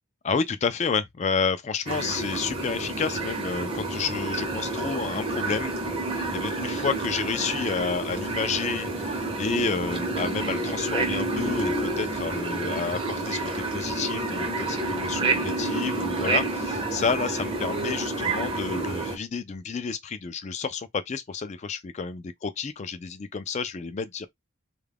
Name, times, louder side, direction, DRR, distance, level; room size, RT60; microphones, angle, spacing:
voice 1, 0.2-5.7 6.1-24.3, left 5 dB, 35° left, 0.3 m, -30 dB
sound 1, 1.9-19.2, right 2 dB, 25° right, 0.6 m, -29 dB
2.3 x 2.2 x 3.3 m
head